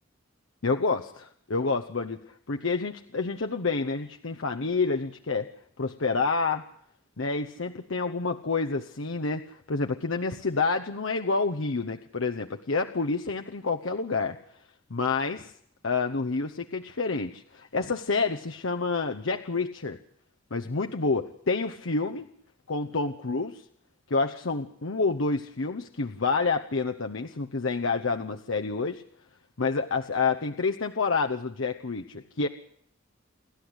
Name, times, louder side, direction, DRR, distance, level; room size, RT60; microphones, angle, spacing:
voice 1, 0.6-2.2 2.5-5.5 5.8-6.7 7.2-14.4 14.9-15.5 15.8-20.0 20.5-22.3 22.7-23.6 24.1-29.0 29.6-32.5, left 4 dB, 90° left, 5 dB, 0.9 m, -28 dB
29.5 x 12.0 x 8.1 m, 0.67 s
head